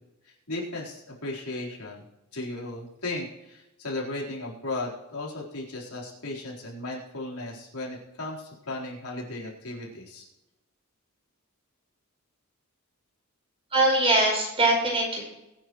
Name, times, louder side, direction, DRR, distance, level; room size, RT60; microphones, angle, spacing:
voice 1, 0.5-2.0 2.3-10.2, left 2 dB, 90° left, -4 dB, 4.2 m, -35 dB
voice 2, 13.7-15.2, right 2 dB, 25° right, -1 dB, 5.1 m, -22 dB
22.0 x 9.6 x 3.2 m, 0.93 s
head